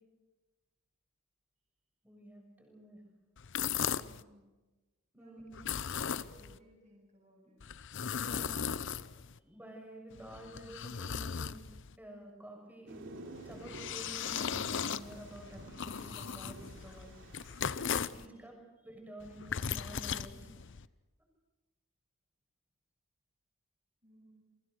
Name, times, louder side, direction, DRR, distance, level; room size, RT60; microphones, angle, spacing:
voice 1, 2.0-3.0 5.1-5.7 6.3-6.4 8.1-8.7 9.4-11.7 12.0-13.0 13.3-17.2 18.1-18.5 18.8-20.7, right 1 dB, 10° right, 2 dB, 6.7 m, -50 dB
sound 1, 3.4-4.2 5.5-6.6 7.6-9.4 10.1-12.0 13.4-18.3 19.2-20.9, left 7 dB, 55° left, 0.7 m, -37 dB
voice 2, 3.9-4.5 5.1-7.6 18.1-18.6 24.0-24.4, right 1 dB, 30° right, -1 dB, 8.0 m, -63 dB
Thunder, 12.9-18.1, right 2 dB, 55° right, 3.6 m, -51 dB
29.5 x 23.0 x 6.5 m, 1.2 s
head